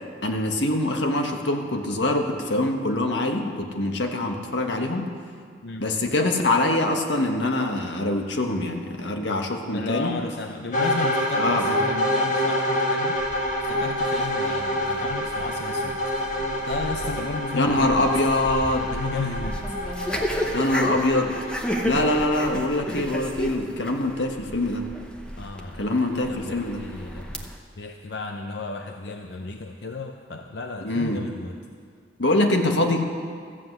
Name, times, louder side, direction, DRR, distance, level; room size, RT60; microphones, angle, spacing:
voice 1, 0.2-5.1 5.8-10.2 11.4-11.8 17.5-18.9 20.5-21.3 21.8-24.8 25.8-26.8 30.8-31.2 32.2-33.1, left 2 dB, 85° left, 3 dB, 1.3 m, -24 dB
voice 2, 9.7-18.1 18.9-19.8 25.4-27.5 27.8-31.5, left 3 dB, 65° left, 4 dB, 0.6 m, -34 dB
sound 1, 10.7-22.5, left 1 dB, 45° left, 1.8 m, -27 dB
sound 2, 13.2-27.6, equal, 5° left, 0.9 m, -33 dB
14.0 x 7.7 x 8.0 m, 2.1 s
head